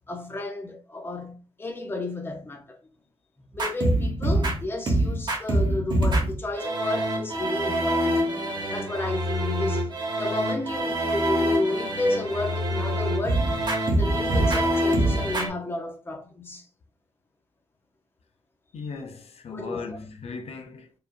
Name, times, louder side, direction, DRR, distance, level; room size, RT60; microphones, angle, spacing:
voice 1, 0.1-2.8 3.5-8.3 8.7-13.5 13.9-16.6 19.5-20.0, left 2 dB, 20° left, 0.7 m, -32 dB
sound 1, 3.5-15.5, right 1 dB, 45° right, 1.1 m, -25 dB
voice 2, 18.7-20.9, left 4 dB, 70° left, 0.6 m, -37 dB
4.8 x 2.7 x 2.5 m
wide cardioid pair, 130°, 11 cm